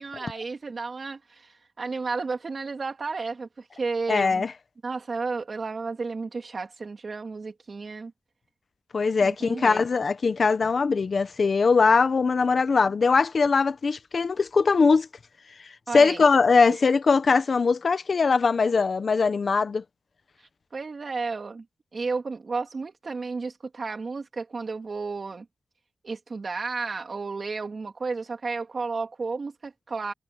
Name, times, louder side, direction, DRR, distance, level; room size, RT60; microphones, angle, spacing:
voice 1, 0.0-4.4 4.8-8.1 9.2-9.8 15.9-16.2 16.7-16.8 20.4-21.6 21.9-25.4 26.0-30.1, right 4 dB, 55° right, 2.9 m, -32 dB
voice 2, 4.1-4.5 8.9-15.1 15.9-19.8, left 4 dB, 60° left, 0.9 m, -21 dB
wide cardioid pair, 100°, 0 cm